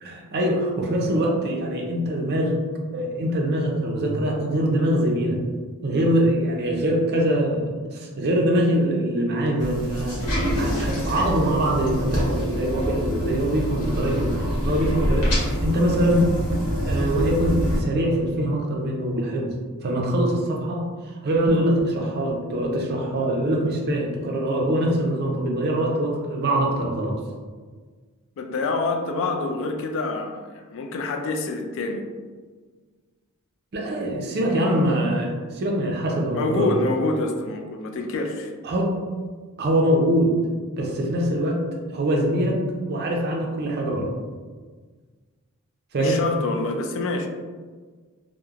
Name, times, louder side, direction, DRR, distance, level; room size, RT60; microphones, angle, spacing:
voice 1, 0.0-2.6 2.9-5.4 5.8-7.6 7.9-10.3 10.5-16.3 16.8-19.5 19.8-27.2 33.7-36.8 38.6-38.9 39.6-40.3 40.8-41.6 41.9-42.6 42.9-44.1 45.9-46.2, right 1 dB, 45° right, -1 dB, 0.5 m, -23 dB
sound 1, 9.6-17.8, equal, 85° left, 1.0 m, -26 dB
voice 2, 28.4-32.0 36.3-38.5 46.0-47.3, left 3 dB, 60° left, 4 dB, 0.3 m, -26 dB
3.0 x 2.1 x 2.4 m, 1.5 s
head